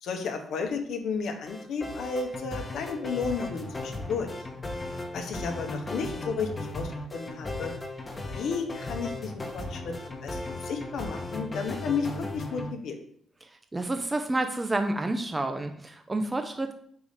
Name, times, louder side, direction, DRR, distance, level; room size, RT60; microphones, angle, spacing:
voice 1, 0.0-4.3 5.1-7.7 8.3-13.0, left 5 dB, 75° left, 4 dB, 0.9 m, -33 dB
sound 1, 1.5-12.7, left 2 dB, 25° left, 1.0 m, -36 dB
voice 2, 13.7-16.7, right 2 dB, 20° right, 6 dB, 0.5 m, -29 dB
4.7 x 4.1 x 5.0 m, 0.64 s
cardioid pair, 90°, 0 cm